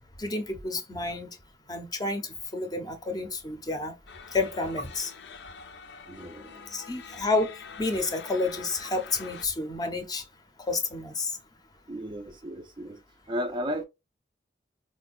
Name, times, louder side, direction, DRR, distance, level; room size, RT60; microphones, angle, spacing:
voice 1, 0.2-1.4 1.7-4.0 4.3-5.1 6.7-10.2 10.7-11.3, left 3 dB, 20° left, 0.6 m, -30 dB
sound 1, 4.1-9.5, left 6 dB, 75° left, 0.5 m, -45 dB
voice 2, 6.1-6.7 11.9-13.0 13.3-13.8, equal, 25° right, 0.3 m, -34 dB
4.3 x 2.1 x 2.4 m
head